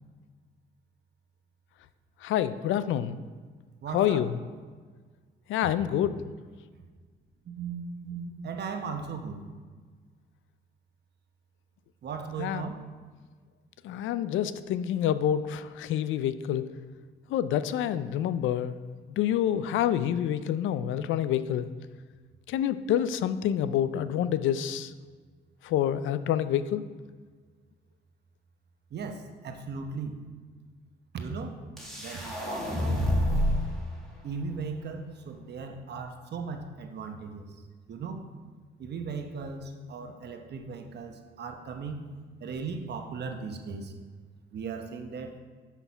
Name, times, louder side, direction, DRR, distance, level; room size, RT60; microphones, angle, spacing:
voice 1, 2.2-3.2 3.9-4.4 5.5-6.2 12.4-12.7 13.8-16.7 17.3-18.8 19.2-21.7 22.5-24.9 25.6-26.8, left 10 dB, 80° left, 13 dB, 0.4 m, -27 dB
voice 2, 3.8-4.2 7.5-9.4 12.0-12.8 28.9-30.2 31.1-31.6 32.0-33.0 34.2-37.5 37.9-38.2 38.8-42.1 42.4-43.9 44.5-45.3, right 5 dB, 60° right, 5 dB, 1.0 m, -37 dB
sound 1, 31.8-33.7, equal, ahead, 2.0 m, -27 dB
6.1 x 5.7 x 5.7 m, 1.5 s
cardioid pair, 90°, 20 cm